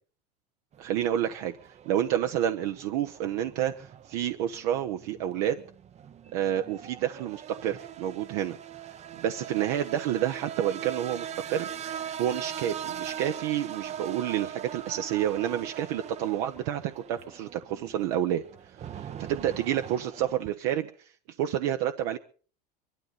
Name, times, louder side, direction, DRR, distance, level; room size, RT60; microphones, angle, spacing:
sound 1, 0.7-20.5, right 9 dB, 35° right, 0.7 m, -41 dB
voice 1, 0.8-1.6 1.8-5.6 6.3-8.6 9.2-11.7 12.2-18.4 18.9-20.9 21.4-22.2, right 11 dB, 75° right, 5 dB, 1.1 m, -29 dB
23.0 x 12.5 x 4.1 m, 0.40 s
supercardioid pair, 110°, 21 cm